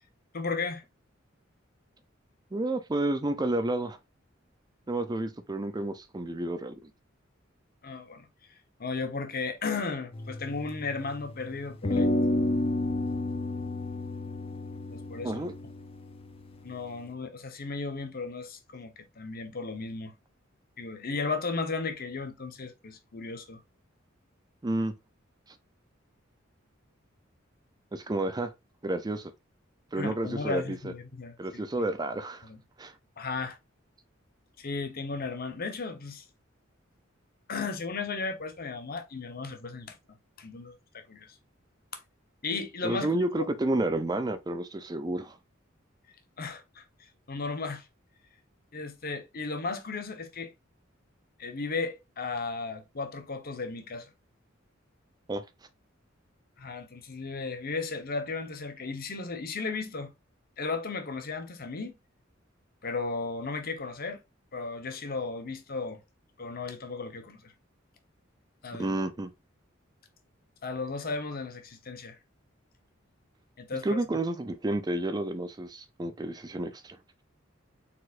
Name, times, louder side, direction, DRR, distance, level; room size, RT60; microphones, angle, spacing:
voice 1, 0.3-0.8 7.8-8.3 8.8-12.1 14.9-15.5 16.6-20.1 20.8-23.6 30.0-31.6 32.4-32.6 33.2-33.6 34.6-36.2 37.5-40.0 40.4-41.3 42.4-43.1 43.4-43.5 46.4-46.8 47.3-47.9 48.7-50.5 51.4-54.1 56.6-60.1 60.6-61.9 62.8-64.2 64.5-66.0 66.4-67.5 68.6-69.0 70.6-72.2 73.6-74.0, left 4 dB, 50° left, 0.9 m, -35 dB
voice 2, 2.5-4.0 4.9-6.9 15.2-15.5 24.6-24.9 27.9-28.5 28.8-29.3 29.9-30.9 31.4-32.5 32.8-32.9 42.8-45.4 55.3-55.4 68.8-69.3 73.8-77.0, right 2 dB, 20° right, 0.5 m, -30 dB
sound 1, 10.1-11.3 11.8-17.0, left 1 dB, 30° left, 0.6 m, -31 dB
4.2 x 4.2 x 2.5 m
head